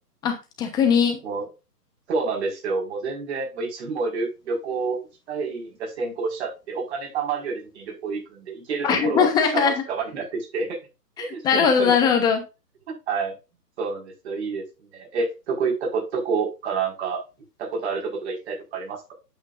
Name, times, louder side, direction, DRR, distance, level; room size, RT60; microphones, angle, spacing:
voice 1, 0.2-1.2 8.8-9.8 11.2-12.4, left 6 dB, 10° left, 5 dB, 0.9 m, -20 dB
voice 2, 2.1-5.0 5.3-10.8 11.2-12.1 13.1-13.3 13.8-14.6 14.9-17.2 17.6-19.1, right 4 dB, 40° right, 0 dB, 5.0 m, -28 dB
8.9 x 8.1 x 2.5 m, 0.27 s
figure-of-eight pair, 140°, 49 cm